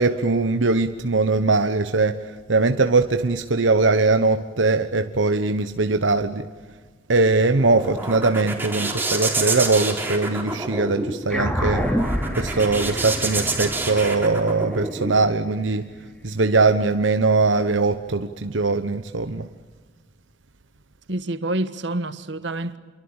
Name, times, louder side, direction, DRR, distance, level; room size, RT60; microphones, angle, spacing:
voice 1, 0.0-6.5 7.1-11.9 12.4-15.9 16.2-19.5, right 3 dB, 85° right, 1.1 m, -21 dB
sound 1, 7.5-15.2, right 2 dB, 10° right, 3.7 m, -28 dB
sound 2, 11.3-16.1, equal, 5° left, 3.3 m, -28 dB
voice 2, 21.1-22.8, right 2 dB, 65° right, 1.6 m, -27 dB
28.5 x 24.0 x 8.8 m
head